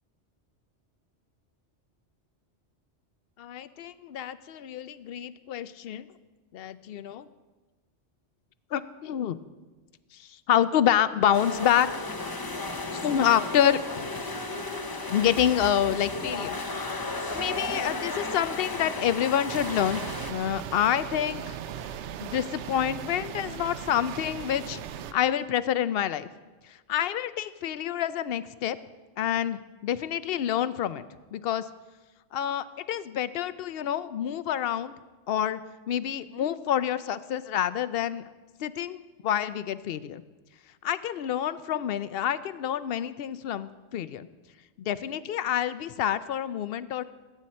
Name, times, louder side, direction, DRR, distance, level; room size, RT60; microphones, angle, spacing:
voice 1, 3.4-6.1 6.5-7.3 8.7-9.4 10.1-11.9 13.0-14.1 15.1-16.6 17.3-20.0 20.3-21.6 22.2-24.8 25.1-26.3 26.7-28.8 29.2-31.1 31.3-31.7 32.3-34.9 35.3-35.6 35.9-38.2 38.6-40.2 40.8-44.3 44.8-47.0, left 10 dB, 60° left, 14 dB, 0.7 m, -27 dB
sound 1, 11.3-20.3, left 2 dB, 20° left, 0.7 m, -34 dB
sound 2, 19.5-25.1, right 9 dB, 75° right, 0.9 m, -38 dB
20.5 x 9.1 x 4.3 m, 1.3 s
omnidirectional pair, 1.2 m